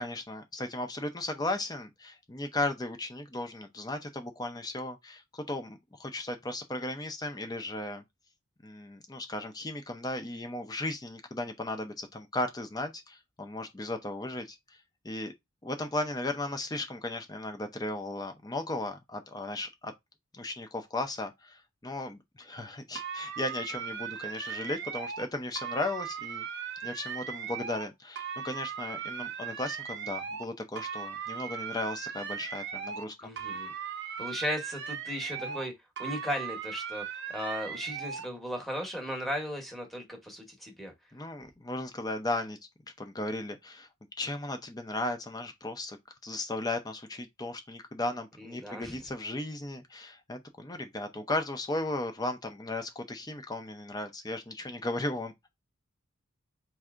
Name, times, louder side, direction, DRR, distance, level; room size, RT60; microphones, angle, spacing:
voice 1, 0.0-8.0 8.6-14.6 15.0-15.3 15.6-19.9 20.3-26.4 26.8-33.3 35.5-35.6 41.1-42.6 43.0-43.9 44.2-46.0 46.2-55.3, left 2 dB, 20° left, 0.6 m, -36 dB
sound 1, 23.0-25.3 25.6-27.9 28.2-30.5 30.8-33.1 33.4-35.7 36.0-38.3, right 7 dB, 55° right, 0.6 m, -38 dB
voice 2, 33.2-33.7 34.2-35.7 36.0-40.9 48.4-49.0, equal, ahead, 1.0 m, -36 dB
4.3 x 2.7 x 2.4 m
head